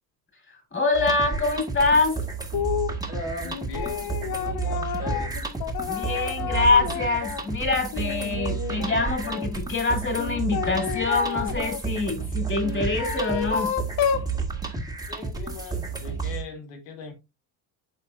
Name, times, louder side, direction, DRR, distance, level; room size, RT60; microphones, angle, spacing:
voice 1, 0.7-2.2 5.8-13.7, left 3 dB, 25° left, 4.0 m, -25 dB
sound 1, 0.9-16.4, right 5 dB, 10° right, 2.0 m, -31 dB
sound 2, 2.5-3.0 3.4-7.5 7.9-9.5 10.2-11.8 12.6-14.3, left 8 dB, 50° left, 0.9 m, -30 dB
voice 2, 3.1-5.4 15.1-17.1, left 3 dB, 85° left, 2.3 m, -38 dB
11.5 x 4.2 x 2.6 m
supercardioid pair, 75°, 48 cm